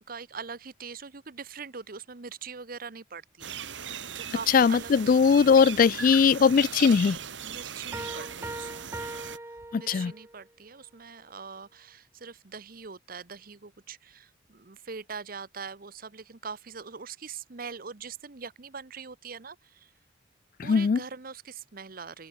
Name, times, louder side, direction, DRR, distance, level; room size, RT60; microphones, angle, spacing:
voice 1, 0.1-3.5 4.2-5.3 7.4-8.9 9.3-19.9 20.6-22.3, right 5 dB, 50° right, 0.9 m, -42 dB
sound 1, 3.4-9.4, right 8 dB, 70° right, 1.7 m, -39 dB
voice 2, 4.5-7.2 9.7-10.1 20.6-21.0, left 6 dB, 45° left, 0.3 m, -20 dB
Piano, 7.9-10.4, right 2 dB, 15° right, 1.0 m, -40 dB
open air
head